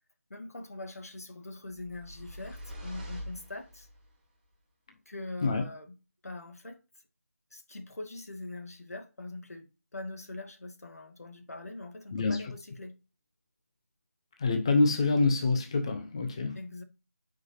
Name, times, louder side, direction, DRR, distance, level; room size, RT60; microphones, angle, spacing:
voice 1, 0.3-3.9 5.1-5.9 6.2-6.8 7.5-12.9 16.5-16.8, left 2 dB, 80° left, 2.1 m, -43 dB
sound 1, 1.7-4.1, equal, 5° right, 1.9 m, -44 dB
voice 2, 12.1-12.4 14.4-16.6, left 3 dB, 20° left, 0.8 m, -26 dB
9.1 x 5.2 x 2.8 m
figure-of-eight pair, 175°, 8 cm